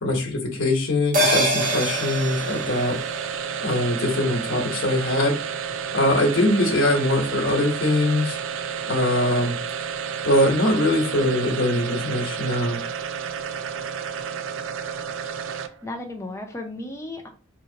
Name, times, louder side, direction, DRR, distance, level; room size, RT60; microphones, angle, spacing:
voice 1, 0.0-3.0 3.6-5.4 5.9-8.4 8.9-9.6 10.2-12.8, left 1 dB, 75° left, 1 dB, 1.0 m, -22 dB
sound 1, 1.1-5.9 6.2-6.3, right 1 dB, 40° right, 0.7 m, -27 dB
sound 2, 1.6-15.9, right 7 dB, 70° right, 0.4 m, -31 dB
voice 2, 15.6-17.3, left 2 dB, 15° left, 3 dB, 0.5 m, -35 dB
4.1 x 2.9 x 2.7 m, 0.38 s
head